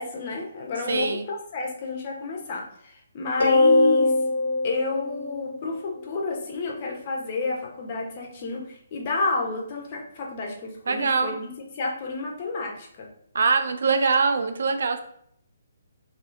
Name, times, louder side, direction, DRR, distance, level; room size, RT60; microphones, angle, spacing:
voice 1, 0.0-4.1 4.6-11.5 11.7-13.1, left 3 dB, 40° left, 1 dB, 1.1 m, -30 dB
voice 2, 0.9-1.3 10.9-11.4 13.3-15.0, right 4 dB, 65° right, 8 dB, 0.5 m, -23 dB
sound 1, 3.4-6.0, left 2 dB, 70° left, 1.0 m, -22 dB
3.1 x 3.0 x 3.9 m, 0.67 s
figure-of-eight pair, 140°, 0 cm